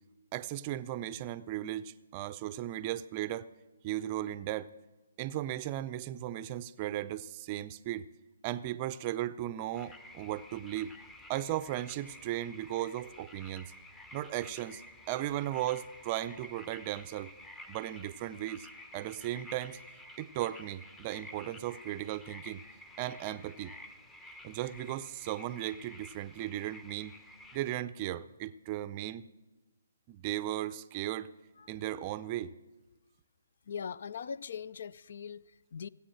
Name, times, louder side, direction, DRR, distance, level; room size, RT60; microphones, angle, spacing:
voice 1, 0.3-3.5 3.8-4.7 5.2-8.1 8.4-10.9 11.3-13.7 14.1-14.8 15.1-17.3 17.7-18.7 18.9-19.8 20.2-22.6 23.0-23.7 24.4-27.2 27.5-29.3 30.1-31.3 31.7-32.5, right 13 dB, 30° right, 0.5 m, -36 dB
sound 1, 9.7-27.6, left 1 dB, 10° left, 0.8 m, -52 dB
voice 2, 33.7-35.9, left 7 dB, 55° left, 0.4 m, -41 dB
17.5 x 8.5 x 6.5 m
figure-of-eight pair, 140°, 0 cm